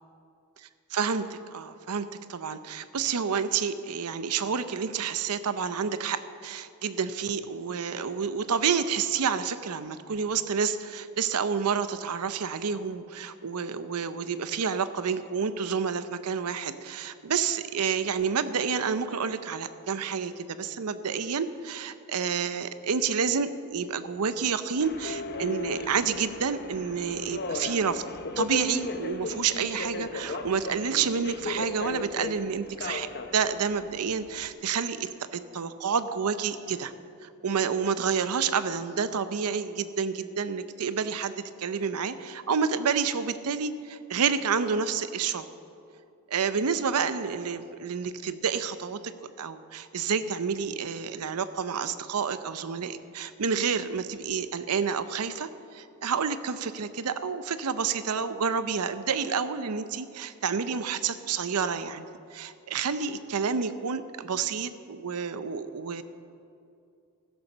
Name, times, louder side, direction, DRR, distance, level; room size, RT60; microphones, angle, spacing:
voice 1, 0.9-28.0 28.4-36.9 37.2-45.5 46.3-62.1 62.3-66.0, right 6 dB, 90° right, 12 dB, 0.6 m, -29 dB
Subway metro underground, 24.8-34.5, left 3 dB, 45° left, 0.7 m, -36 dB
15.5 x 6.9 x 6.7 m, 2.5 s
head